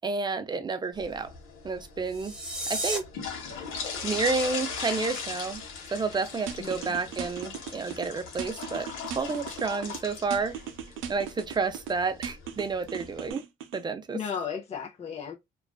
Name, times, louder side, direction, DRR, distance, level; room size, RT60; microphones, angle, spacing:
voice 1, 0.0-1.3 1.6-2.3 2.7-3.1 4.0-5.6 5.9-8.9 9.1-10.5 11.1-13.4 13.7-14.2, right 4 dB, 20° right, 0.4 m, -30 dB
sound 1, 0.9-13.3, left 5 dB, 85° left, 0.8 m, -39 dB
sound 2, 2.0-3.0, right 1 dB, 5° right, 0.9 m, -32 dB
sound 3, 6.5-8.1 8.4-10.0 10.3-11.9 12.2-13.8, right 8 dB, 80° right, 0.5 m, -38 dB
voice 2, 6.6-7.0 14.1-15.3, left 7 dB, 30° left, 0.5 m, -35 dB
2.3 x 2.3 x 2.3 m
cardioid pair, 90°, 20 cm